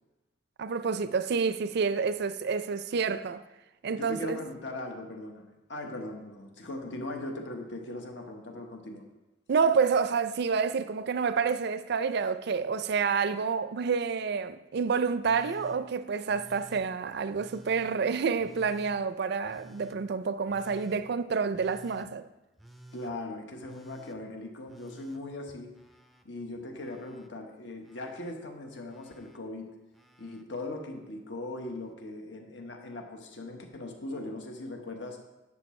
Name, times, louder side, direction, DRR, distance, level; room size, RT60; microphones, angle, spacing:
voice 1, 0.6-3.4 3.8-4.4 9.5-22.3, right 5 dB, 60° right, 0.4 m, -28 dB
voice 2, 3.9-9.1 22.9-25.7 26.2-29.7 30.2-35.2, left 2 dB, 70° left, 1.3 m, -39 dB
Telephone, 15.2-15.8 16.3-16.8 17.3-17.9 18.4-18.9 19.4-20.0 20.5-21.0 21.5-22.1 22.6-23.1 23.6-24.2 24.7-26.2 26.5-27.3 27.8-28.3 28.9-29.4 29.9-30.4 31.6-31.7, right 1 dB, ahead, 0.5 m, -53 dB
10.5 x 8.4 x 3.2 m
head